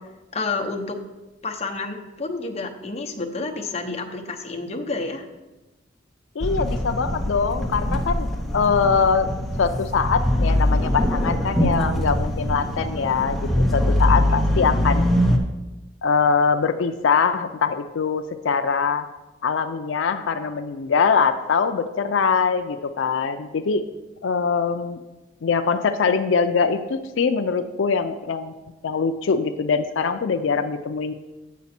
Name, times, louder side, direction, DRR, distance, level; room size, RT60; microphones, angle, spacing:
voice 1, 0.3-1.0 1.4-5.3, left 3 dB, 30° left, 2 dB, 0.8 m, -29 dB
voice 2, 6.4-9.3 9.6-15.0 16.0-19.1 19.4-23.9 24.2-25.0 25.4-28.5 28.8-31.1, left 5 dB, 80° left, 8 dB, 0.4 m, -23 dB
sound 1, 6.4-15.4, left 1 dB, ahead, 0.7 m, -22 dB
8.3 x 6.6 x 4.2 m, 1.1 s
head